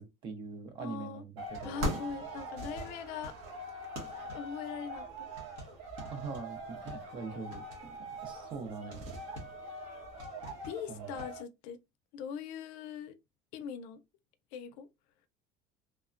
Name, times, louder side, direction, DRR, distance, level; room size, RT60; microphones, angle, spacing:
voice 1, 0.0-2.0 6.1-8.0 8.2-9.0 10.9-11.2, right 4 dB, 35° right, 0.6 m, -43 dB
voice 2, 0.8-1.2 1.6-3.4 4.3-5.5 10.6-11.8 12.1-13.1 13.5-14.0 14.5-14.9, left 7 dB, 65° left, 0.4 m, -41 dB
sound 1, 1.4-11.4, right 1 dB, 75° right, 1.1 m, -41 dB
3.1 x 2.1 x 2.4 m
cardioid pair, 175°, 14 cm